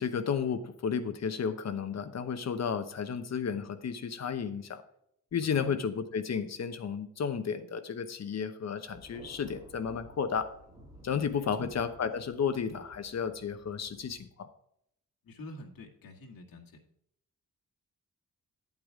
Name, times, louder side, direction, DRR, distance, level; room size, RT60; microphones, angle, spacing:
voice 1, 0.0-4.8 5.3-10.5 11.0-14.5, left 6 dB, 50° left, 9 dB, 1.0 m, -33 dB
Thunder, 8.9-14.2, right 1 dB, 10° right, 3.7 m, -54 dB
voice 2, 11.4-11.7 15.2-16.8, left 1 dB, 80° left, 0 dB, 2.0 m, -47 dB
9.8 x 8.5 x 3.7 m, 0.74 s
wide cardioid pair, 175°, 34 cm